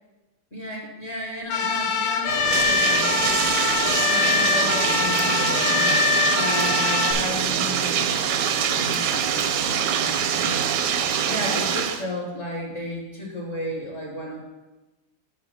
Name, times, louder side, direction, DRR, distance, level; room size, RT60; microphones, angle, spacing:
voice 1, 0.5-3.2 4.0-6.0 6.3-10.7 11.2-14.4, left 1 dB, 40° left, -2 dB, 1.4 m, -34 dB
sound 1, 1.5-7.1, left 5 dB, 85° left, 1.6 m, -23 dB
Bathtub (filling or washing), 2.3-12.0, right 8 dB, 70° right, 1.0 m, -24 dB
sound 2, 5.1-5.4 6.5-6.8 8.9-9.6, right 2 dB, 40° right, 0.6 m, -39 dB
6.2 x 5.3 x 6.4 m, 1.1 s
omnidirectional pair, 2.2 m